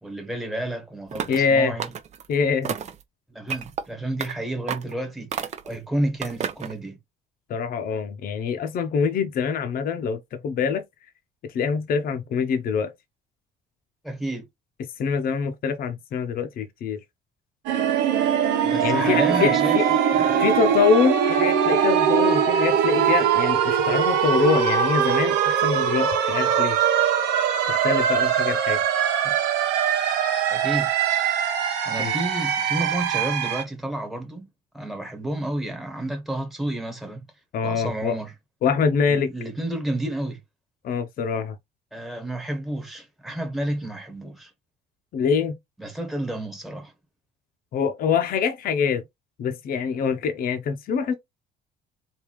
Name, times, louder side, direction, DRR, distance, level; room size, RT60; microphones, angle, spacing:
voice 1, 0.0-1.9 3.3-7.0 14.0-14.4 18.6-19.8 20.1-20.6 29.2-29.3 30.5-30.9 31.8-34.5 34.7-37.3 37.6-38.3 39.1-40.4 41.9-44.5 45.8-46.9, right 1 dB, ahead, 1.5 m, -31 dB
sound 1, 1.1-1.5 1.8-2.3 2.6-3.0 3.5-3.8 4.2-4.3 4.7-4.9 5.3-5.7 6.2-6.7, right 7 dB, 45° right, 0.7 m, -31 dB
voice 2, 1.3-1.7 2.3-2.7 7.5-10.8 11.5-12.9 15.0-17.0 18.8-19.9 20.4-26.8 27.7-28.8 32.0-32.1 37.5-38.2 38.6-39.3 40.8-41.5 45.1-45.6 47.7-49.0 49.4-51.1, left 6 dB, 60° left, 0.8 m, -24 dB
sound 2, 17.7-33.6, right 8 dB, 90° right, 1.0 m, -22 dB
3.6 x 2.7 x 4.7 m
cardioid pair, 110°, 17 cm